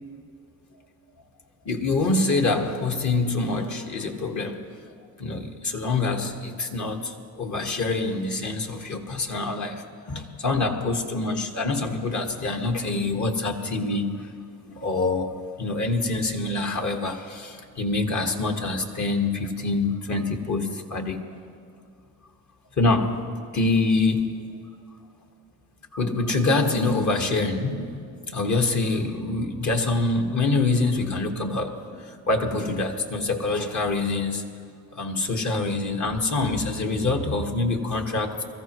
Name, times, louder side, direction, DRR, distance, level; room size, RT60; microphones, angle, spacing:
voice 1, 1.6-4.8 5.2-14.3 14.7-21.2 22.8-24.6 25.9-34.5 34.9-38.4, left 3 dB, 50° left, 4 dB, 1.7 m, -25 dB
22.5 x 14.5 x 3.1 m, 2.3 s
cardioid pair, 75°, 39 cm